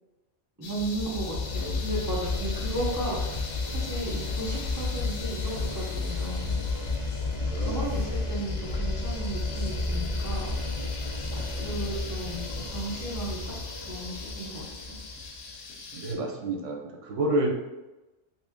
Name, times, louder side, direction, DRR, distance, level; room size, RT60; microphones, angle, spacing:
sound 1, 0.6-16.1, left 4 dB, 80° left, 1.0 m, -43 dB
voice 1, 0.6-3.4 3.7-6.6 7.6-10.5 11.3-13.4 13.8-15.0, right 1 dB, 20° right, -6 dB, 0.6 m, -35 dB
sound 2, 0.7-15.5, left 3 dB, 55° left, 0.3 m, -32 dB
sound 3, 2.3-13.0, equal, 25° left, 1.1 m, -42 dB
voice 2, 7.4-7.8 11.3-12.0 15.9-17.5, right 2 dB, 85° right, 0 dB, 1.1 m, -30 dB
2.9 x 2.7 x 3.4 m, 1.0 s
omnidirectional pair, 1.3 m